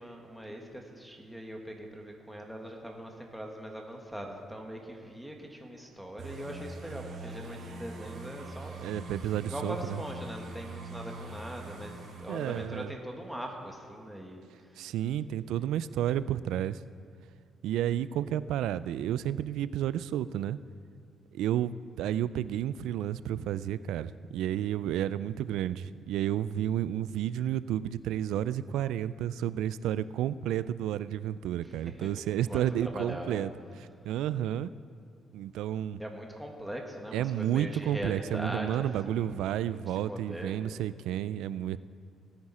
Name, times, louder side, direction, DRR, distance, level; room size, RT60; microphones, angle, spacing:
voice 1, 0.0-8.9 9.5-14.8 15.5-15.8 31.6-33.5 36.0-39.8 40.0-40.6, equal, ahead, 0 dB, 1.9 m, -41 dB
sound 1, 6.2-12.7, right 2 dB, 65° right, 2.5 m, -43 dB
voice 2, 8.8-10.0 12.3-12.9 14.8-16.8 17.6-20.6 21.3-33.5 33.8-34.7 35.3-36.0 37.1-41.8, right 11 dB, 85° right, 16 dB, 0.3 m, -31 dB
18.0 x 9.7 x 4.3 m, 2.4 s
cardioid pair, 90°, 0 cm